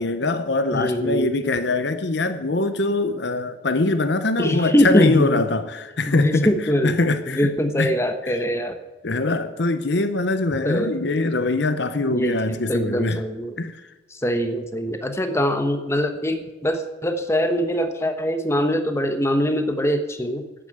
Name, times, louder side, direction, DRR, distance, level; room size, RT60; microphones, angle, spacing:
voice 1, 0.0-6.5 6.8-7.5 7.8-7.9 8.2-8.4 9.0-13.2 13.6-13.8, left 2 dB, 60° left, 11 dB, 0.8 m, -23 dB
voice 2, 0.7-1.3 4.4-5.4 6.1-6.9 7.3-8.7 10.6-10.9 12.1-13.6 14.1-20.5, equal, 15° left, 7 dB, 1.1 m, -23 dB
11.5 x 8.8 x 8.0 m, 1.1 s
head